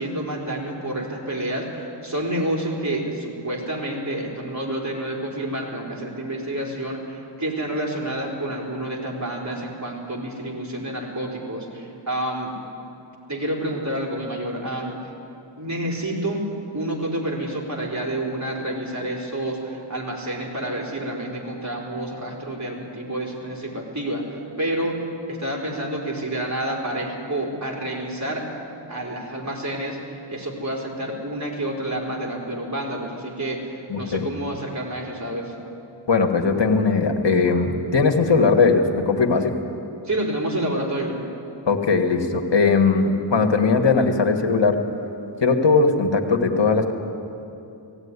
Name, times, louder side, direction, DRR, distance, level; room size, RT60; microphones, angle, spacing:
voice 1, 0.0-12.5 13.3-15.1 15.6-16.4 16.7-28.4 28.9-35.5 40.0-41.2, right 1 dB, 35° right, -1 dB, 4.0 m, -29 dB
voice 2, 33.9-34.3 36.1-39.6 41.7-44.8 45.4-46.9, left 4 dB, 60° left, 4 dB, 1.8 m, -19 dB
17.0 x 16.0 x 9.8 m, 2.8 s
wide cardioid pair, 80°, 48 cm